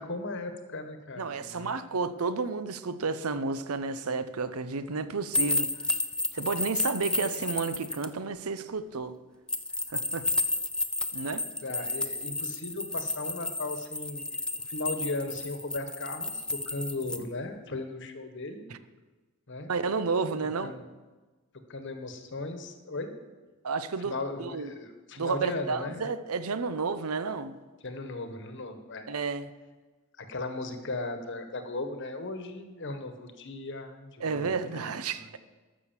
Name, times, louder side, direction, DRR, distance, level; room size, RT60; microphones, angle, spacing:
voice 1, 0.0-1.9 11.6-14.2 14.6-18.7 19.5-19.7 20.6-20.8 21.7-23.1 24.0-26.1 27.8-29.1 30.2-35.4, left 2 dB, 60° left, 1.3 m, -37 dB
voice 2, 1.2-5.7 6.3-9.1 9.9-10.3 11.1-11.5 18.7-18.8 19.7-20.7 23.6-24.7 25.2-27.5 29.1-29.5 34.2-35.4, right 4 dB, 90° right, 0.7 m, -31 dB
sound 1, 5.3-8.1 9.5-17.2, left 2 dB, 5° left, 0.5 m, -31 dB
12.5 x 6.3 x 7.4 m
head